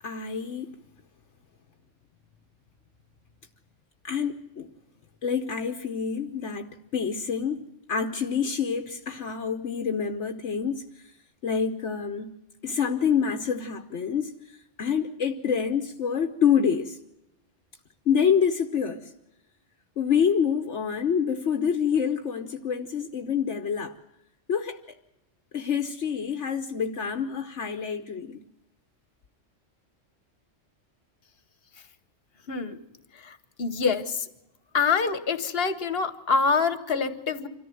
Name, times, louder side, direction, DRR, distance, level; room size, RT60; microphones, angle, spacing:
voice 1, 0.0-0.8 4.0-4.7 5.2-11.1 11.4-12.3 12.6-14.4 14.8-17.0 18.1-19.1 20.0-23.9 24.5-24.8 25.5-28.4, left 7 dB, 70° left, 1.2 m, -27 dB
voice 2, 33.2-34.3 34.7-37.5, left 5 dB, 50° left, 1.5 m, -26 dB
26.0 x 14.0 x 7.7 m
omnidirectional pair, 1.3 m